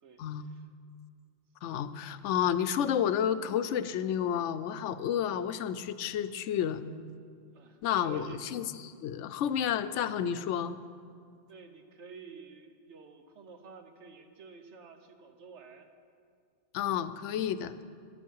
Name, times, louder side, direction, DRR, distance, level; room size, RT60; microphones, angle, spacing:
voice 1, 0.0-0.7 7.5-8.5 11.5-15.9, right 5 dB, 75° right, 6 dB, 1.3 m, -50 dB
voice 2, 1.6-7.0 7.8-10.8 16.7-17.8, left 9 dB, 90° left, 12 dB, 0.9 m, -31 dB
13.0 x 11.0 x 4.6 m, 2.2 s
omnidirectional pair, 1.2 m